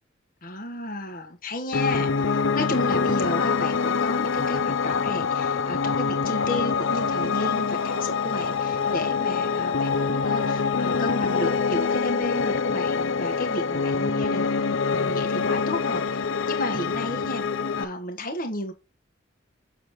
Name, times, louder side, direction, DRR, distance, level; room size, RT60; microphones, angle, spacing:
voice 1, 0.4-14.5 14.9-17.4 17.7-18.7, left 1 dB, 45° left, 1.5 m, -32 dB
Piano, 1.7-17.8, left 5 dB, 85° left, 0.7 m, -25 dB
8.2 x 7.3 x 3.1 m
head